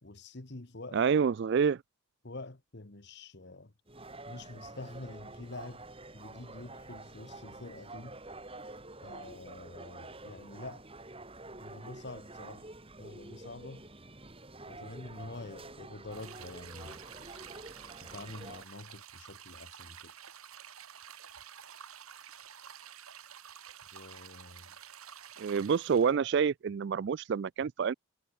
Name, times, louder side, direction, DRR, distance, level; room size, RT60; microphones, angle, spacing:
voice 1, 0.0-1.0 2.2-3.7 4.3-5.8 6.1-8.2 9.0-10.8 11.6-12.7 13.0-13.9 14.6-17.3 18.0-20.1 23.9-24.8, left 2 dB, 50° left, 1.3 m, -47 dB
voice 2, 0.9-1.8 25.4-27.9, right 6 dB, 50° right, 0.3 m, -28 dB
sound 1, 3.9-18.6, right 2 dB, 25° right, 3.1 m, -48 dB
sound 2, 16.1-26.1, right 9 dB, 80° right, 2.4 m, -50 dB
head